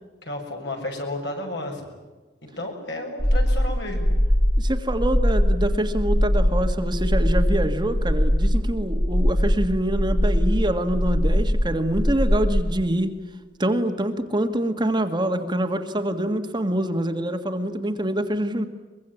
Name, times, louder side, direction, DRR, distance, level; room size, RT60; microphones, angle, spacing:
voice 1, 0.2-1.9 2.4-4.1, left 1 dB, 65° left, 2 dB, 6.7 m, -32 dB
sound 1, 3.2-12.6, equal, 30° left, 3.1 m, -21 dB
voice 2, 4.6-13.2 13.6-18.7, right 1 dB, 25° right, 6 dB, 1.7 m, -25 dB
23.5 x 23.0 x 10.0 m, 1.3 s
head